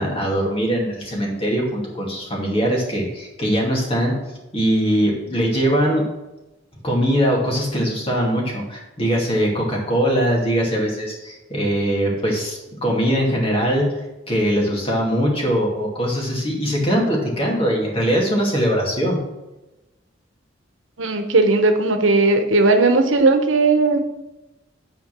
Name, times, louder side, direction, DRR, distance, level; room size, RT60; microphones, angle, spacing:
voice 1, 0.0-4.1 4.5-6.1 6.8-14.0 14.3-19.2, equal, 30° left, -1 dB, 2.4 m, -21 dB
voice 2, 21.0-24.0, right 3 dB, 80° right, 6 dB, 1.0 m, -17 dB
9.6 x 4.4 x 6.0 m, 1.0 s
head